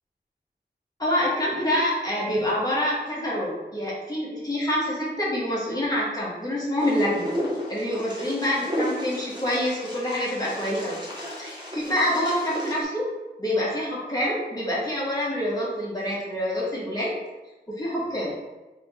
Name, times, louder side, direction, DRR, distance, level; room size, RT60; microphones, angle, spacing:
voice 1, 1.0-7.3 7.7-10.9 11.4-13.1 13.4-17.1 17.7-18.3, left 1 dB, 20° left, -6 dB, 1.4 m, -26 dB
Wind, 6.8-12.8, equal, 25° right, 1.0 m, -33 dB
3.6 x 2.9 x 3.6 m, 1.1 s
wide cardioid pair, 65°, 18 cm